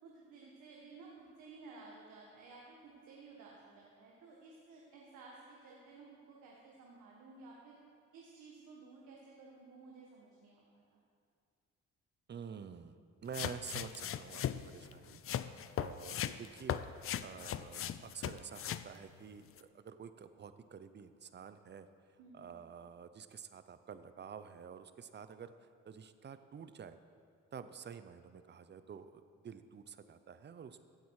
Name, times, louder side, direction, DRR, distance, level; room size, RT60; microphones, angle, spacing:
voice 1, 0.0-7.8 8.1-11.0 22.2-22.6, right 3 dB, 85° right, -3 dB, 1.7 m, -55 dB
voice 2, 12.3-15.2 15.8-16.8 17.2-21.9 22.3-27.0 27.5-30.8, right 7 dB, 35° right, 11 dB, 0.7 m, -49 dB
sound 1, 13.3-18.9 19.6-19.7, left 10 dB, 50° left, 0.5 m, -38 dB
16.0 x 7.8 x 4.9 m, 2.2 s
cardioid pair, 90°, 30 cm